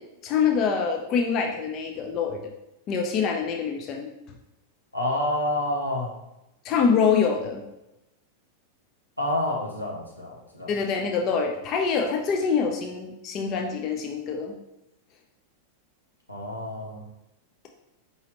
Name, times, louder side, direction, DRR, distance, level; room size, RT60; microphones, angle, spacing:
voice 1, 0.2-2.5 2.9-4.1 6.6-7.6 10.7-14.5, left 6 dB, 35° left, 2 dB, 0.4 m, -25 dB
voice 2, 4.9-6.1 9.2-10.7 16.3-17.0, left 1 dB, 90° left, -2 dB, 0.8 m, -28 dB
4.8 x 2.7 x 2.9 m, 0.91 s
figure-of-eight pair, 90°, 0 cm